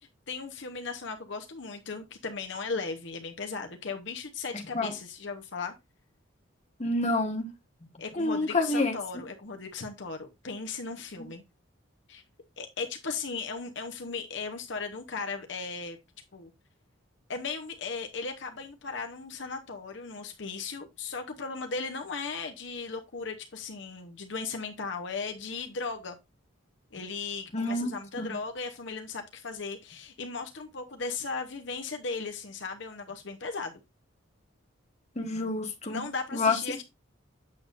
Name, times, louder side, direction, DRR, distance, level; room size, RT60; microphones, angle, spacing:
voice 1, 0.3-5.7 8.0-11.4 12.1-12.2 12.6-16.0 16.3-16.5 17.3-26.2 26.9-33.8 35.9-36.8, left 4 dB, 60° left, 0.8 m, -37 dB
voice 2, 6.8-7.5 8.2-9.0 27.5-27.9 28.2-28.3 35.2-36.0 36.3-36.6, left 2 dB, 30° left, 1.2 m, -27 dB
8.5 x 6.6 x 2.5 m
head